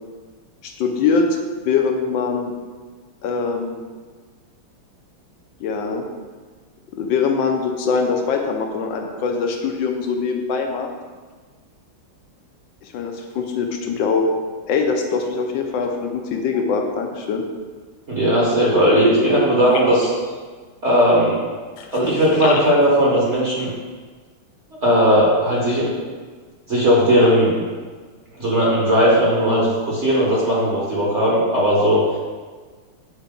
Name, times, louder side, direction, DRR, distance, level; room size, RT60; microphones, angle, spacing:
voice 1, 0.6-1.3 1.6-2.5 3.2-3.8 5.6-6.0 6.9-10.9 12.9-14.3 14.7-17.4 19.7-19.8 21.8-22.0 22.3-22.6, left 5 dB, 70° left, 3 dB, 1.3 m, -22 dB
voice 2, 18.1-20.1 20.8-21.4 21.9-23.7 24.8-25.9 26.7-27.6 28.4-32.0, equal, 40° right, -5 dB, 1.2 m, -17 dB
8.2 x 4.5 x 3.7 m, 1.4 s
omnidirectional pair, 2.4 m